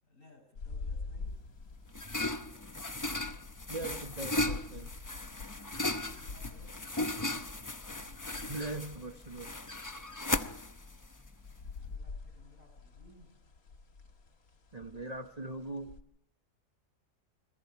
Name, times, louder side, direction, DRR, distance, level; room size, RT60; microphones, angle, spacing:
voice 1, 0.0-1.5 5.8-7.4 10.7-13.3, left 1 dB, 65° left, 4 dB, 7.8 m, -60 dB
sound 1, 0.6-16.0, left 4 dB, 90° left, 2.2 m, -47 dB
sound 2, 1.3-11.9, left 2 dB, 20° left, 0.6 m, -37 dB
voice 2, 3.7-4.9 8.5-9.5 14.7-16.0, right 2 dB, 30° right, 6 dB, 1.2 m, -40 dB
29.5 x 22.5 x 4.7 m, 0.83 s
omnidirectional pair, 1.5 m